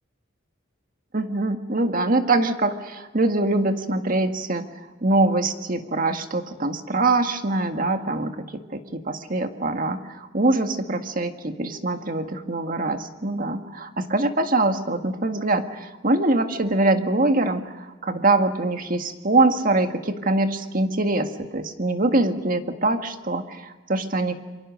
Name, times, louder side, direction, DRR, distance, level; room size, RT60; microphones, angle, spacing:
voice 1, 1.1-24.3, right 2 dB, 45° right, 6 dB, 1.8 m, -23 dB
27.5 x 24.5 x 6.4 m, 1.2 s
head